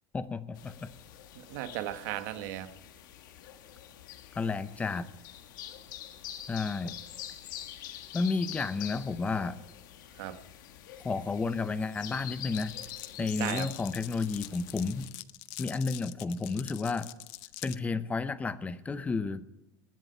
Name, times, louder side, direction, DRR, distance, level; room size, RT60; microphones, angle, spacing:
voice 1, 0.1-0.9 4.3-5.1 6.5-7.0 8.1-9.6 11.0-12.7 13.2-15.1 15.6-17.1 17.6-19.4, left 4 dB, 15° left, 14 dB, 0.7 m, -31 dB
sound 1, 0.5-15.1, left 11 dB, 80° left, 1.5 m, -46 dB
voice 2, 1.3-2.7 10.2-10.4 13.2-13.7, right 13 dB, 65° right, 10 dB, 1.2 m, -36 dB
Glass, 12.5-17.8, left 20 dB, 60° left, 0.6 m, -45 dB
19.5 x 7.6 x 5.6 m, 0.97 s
supercardioid pair, 140°, 10 cm